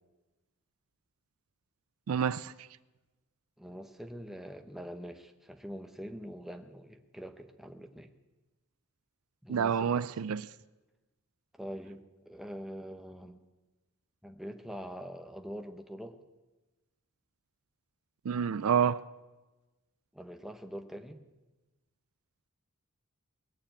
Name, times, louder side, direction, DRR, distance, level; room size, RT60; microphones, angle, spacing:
voice 1, 2.1-2.5 9.5-10.5 18.2-19.0, right 7 dB, 70° right, 0.4 m, -28 dB
voice 2, 3.6-8.1 9.4-10.0 11.6-13.4 14.2-16.2 20.1-21.2, equal, ahead, 0.9 m, -44 dB
20.5 x 6.9 x 8.9 m
head